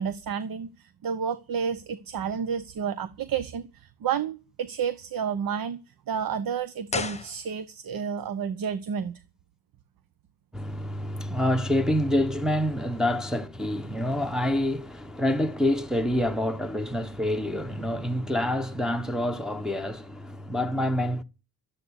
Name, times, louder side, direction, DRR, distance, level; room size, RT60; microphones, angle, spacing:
voice 1, 0.0-5.8 6.1-9.2, right 7 dB, 55° right, 1.1 m, -31 dB
sound 1, 6.9-8.0 8.2-8.3, left 4 dB, 15° left, 1.2 m, -34 dB
voice 2, 10.5-21.2, left 1 dB, ahead, 1.0 m, -27 dB
12.5 x 9.2 x 8.2 m
cardioid pair, 135°, 41 cm